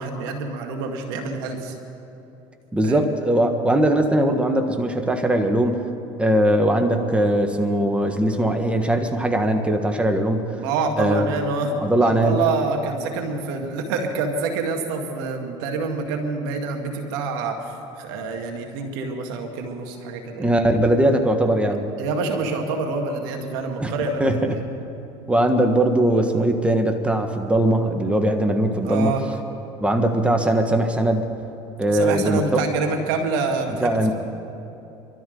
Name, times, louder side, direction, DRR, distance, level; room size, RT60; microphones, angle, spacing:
voice 1, 0.0-1.8 2.8-3.1 10.6-20.5 22.0-24.4 28.8-29.2 31.9-34.1, right 4 dB, 85° right, 3 dB, 2.0 m, -27 dB
voice 2, 2.7-5.8 6.2-10.5 11.0-11.3 11.8-12.4 20.4-21.9 23.8-23.9 24.2-24.6 25.3-29.1 29.8-31.2 31.8-32.6 33.8-34.1, right 1 dB, 10° right, 4 dB, 1.5 m, -20 dB
25.0 x 13.0 x 3.9 m, 3.0 s
supercardioid pair, 90°, 12 cm